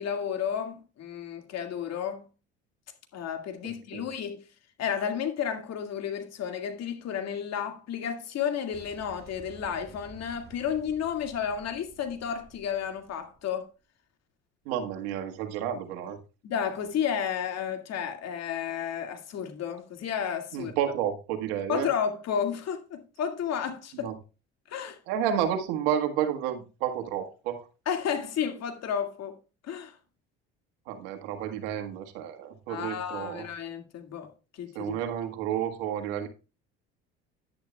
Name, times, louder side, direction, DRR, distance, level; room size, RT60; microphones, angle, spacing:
voice 1, 0.0-2.3 3.1-4.4 4.8-13.7 16.4-20.7 21.7-24.1 24.7-25.0 27.9-29.4 29.6-30.0 32.7-34.9, left 8 dB, 55° left, 2.2 m, -32 dB
voice 2, 3.6-4.0 14.6-16.2 20.5-21.9 24.0-24.1 25.1-27.7 30.9-33.5 34.7-36.3, right 9 dB, 80° right, 1.7 m, -31 dB
Boom, 8.7-13.6, right 4 dB, 30° right, 5.3 m, -52 dB
10.5 x 10.0 x 2.3 m
hypercardioid pair, 70°, 31 cm